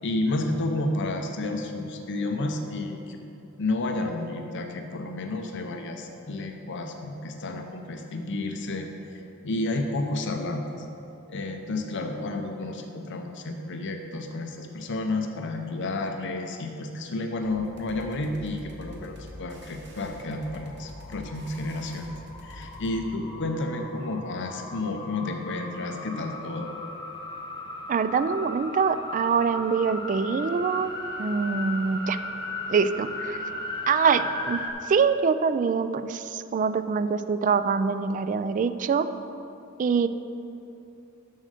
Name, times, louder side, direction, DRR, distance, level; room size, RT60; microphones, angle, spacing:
voice 1, 0.0-3.2 3.6-8.9 9.4-10.9 11.3-22.1 22.4-26.7, left 2 dB, 60° left, 4 dB, 0.6 m, -31 dB
sound 1, 17.4-23.0, equal, 60° right, 1.2 m, -45 dB
sound 2, 20.2-34.7, left 2 dB, 25° left, 0.9 m, -37 dB
voice 2, 27.9-32.2 32.7-33.4 33.9-34.6 34.9-39.1 39.8-40.1, right 5 dB, 40° right, 12 dB, 0.3 m, -24 dB
7.5 x 6.3 x 6.5 m, 2.8 s
head